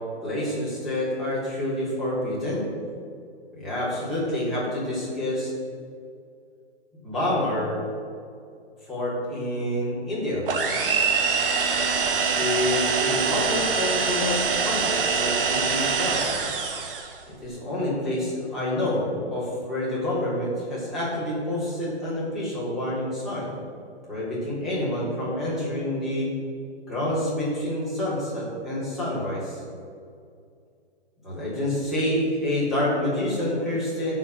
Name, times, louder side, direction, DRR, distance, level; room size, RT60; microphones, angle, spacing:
voice 1, 0.2-2.6 3.5-5.5 7.0-7.8 8.9-10.4 12.3-16.2 17.4-23.5 24.1-26.3 26.9-29.6 31.2-34.1, left 1 dB, ahead, -10 dB, 3.5 m, -27 dB
sound 1, 10.5-17.2, right 5 dB, 50° right, 1.6 m, -24 dB
14.5 x 5.7 x 7.4 m, 2.3 s
hypercardioid pair, 165°, 34 cm